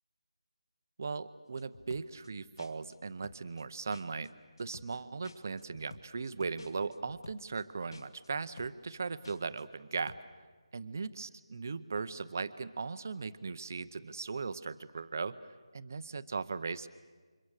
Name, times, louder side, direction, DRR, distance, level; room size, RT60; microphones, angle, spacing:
voice 1, 1.0-4.3 4.6-10.2 10.7-15.4 15.7-16.9, right 4 dB, 30° right, 13 dB, 0.7 m, -38 dB
sound 1, 1.6-2.3 2.6-3.0 3.2-3.6 3.9-4.3 4.6-5.0 5.2-7.6 7.9-8.3 8.6-9.0 9.2-9.6 9.9-10.2, left 3 dB, 45° left, 1.3 m, -52 dB
29.5 x 26.0 x 6.5 m, 1.5 s
figure-of-eight pair, 180°, 3 cm